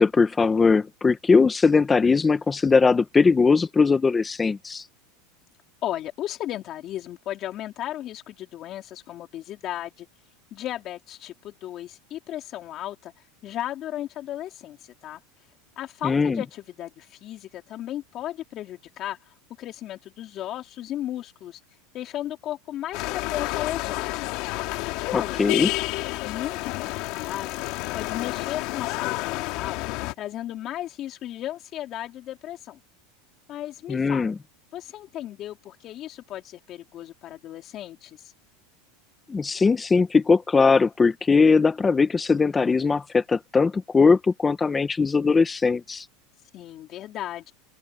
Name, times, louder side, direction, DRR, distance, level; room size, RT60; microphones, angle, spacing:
voice 1, 0.0-4.8 16.0-16.4 25.1-25.7 33.9-34.4 39.3-46.0, left 4 dB, 15° left, 0.9 m, -20 dB
voice 2, 5.8-10.1 10.5-13.1 13.4-14.8 15.0-15.2 15.8-19.2 19.6-21.6 21.9-24.1 25.0-27.5 27.9-29.8 30.2-32.8 33.5-34.3 34.7-38.2 46.5-47.5, left 13 dB, 35° left, 3.7 m, -35 dB
sound 1, 22.9-30.1, left 21 dB, 55° left, 2.2 m, -30 dB
open air
supercardioid pair, 145°, 0 cm